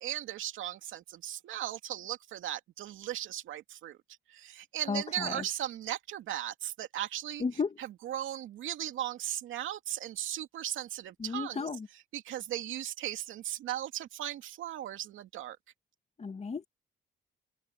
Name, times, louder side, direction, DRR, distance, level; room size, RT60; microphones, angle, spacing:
voice 1, 0.0-4.0 4.3-7.4 8.0-11.6 12.1-15.6, right 12 dB, 80° right, 2.5 m, -37 dB
voice 2, 4.9-5.5 7.4-7.8 11.2-11.9 16.2-16.6, left 5 dB, 35° left, 2.3 m, -34 dB
cardioid pair, 90°, 20 cm